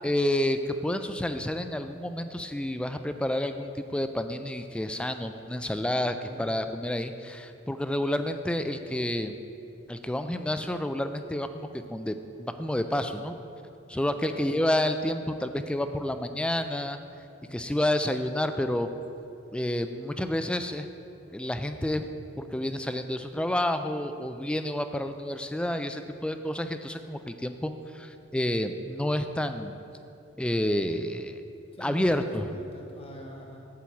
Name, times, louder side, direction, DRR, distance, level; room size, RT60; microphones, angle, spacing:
voice 1, 0.0-9.4 9.9-13.3 13.9-17.0 17.5-18.9 19.5-20.9 21.3-22.1 22.4-29.8 30.4-31.4 31.8-32.4, left 1 dB, 5° left, 8 dB, 0.3 m, -29 dB
voice 2, 6.1-6.5 14.2-14.5 17.4-17.6 31.7-33.7, left 1 dB, 30° left, 0 dB, 1.1 m, -44 dB
8.5 x 4.6 x 7.0 m, 2.6 s
head